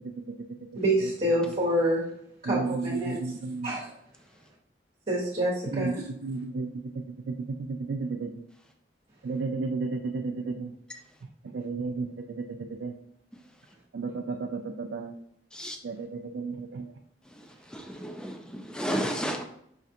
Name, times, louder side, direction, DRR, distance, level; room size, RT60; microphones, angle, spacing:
voice 1, 0.7-2.0 2.4-3.2 3.6-3.9 5.1-6.0, right 1 dB, 45° right, -7 dB, 1.2 m, -27 dB
voice 2, 2.4-3.8 5.7-8.3 9.2-10.7 11.4-12.9 13.9-15.2 15.8-16.9, right 4 dB, 80° right, 4 dB, 0.4 m, -33 dB
voice 3, 17.4-19.4, equal, 5° left, 3 dB, 0.5 m, -33 dB
5.8 x 2.5 x 2.7 m, 0.73 s
head